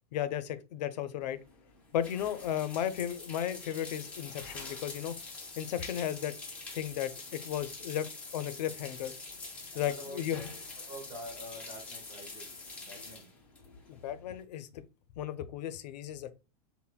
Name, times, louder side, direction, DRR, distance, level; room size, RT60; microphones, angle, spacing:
voice 1, 0.1-1.4 1.9-5.2 5.6-6.3 6.7-8.1 8.3-9.1 9.7-10.5 13.9-14.8 15.2-16.3, left 10 dB, 80° left, 0.5 m, -34 dB
sound 1, 1.2-14.4, left 3 dB, 5° left, 0.4 m, -45 dB
voice 2, 9.7-10.5 10.8-12.5 12.8-13.3, equal, 25° right, 0.9 m, -46 dB
5.6 x 2.1 x 2.2 m
supercardioid pair, 175°, 21 cm